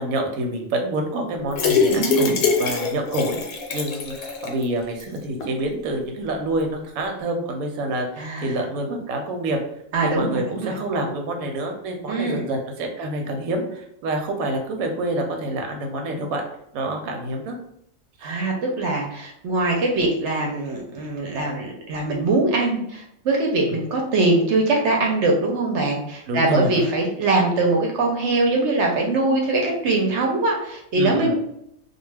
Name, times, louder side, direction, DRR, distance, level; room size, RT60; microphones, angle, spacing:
voice 1, 0.0-9.6 10.0-16.4 16.7-17.6 18.2-18.3 26.3-26.9 31.0-31.3, right 1 dB, 85° right, 2 dB, 1.0 m, -27 dB
sound 1, 1.5-4.6 5.0-5.1 5.4-5.5, left 5 dB, 80° left, 1.0 m, -23 dB
voice 2, 1.9-2.4 8.2-8.5 9.9-10.7 12.1-12.5 18.2-31.3, right 2 dB, 65° right, 0 dB, 0.8 m, -22 dB
2.3 x 2.3 x 3.2 m, 0.76 s
omnidirectional pair, 1.4 m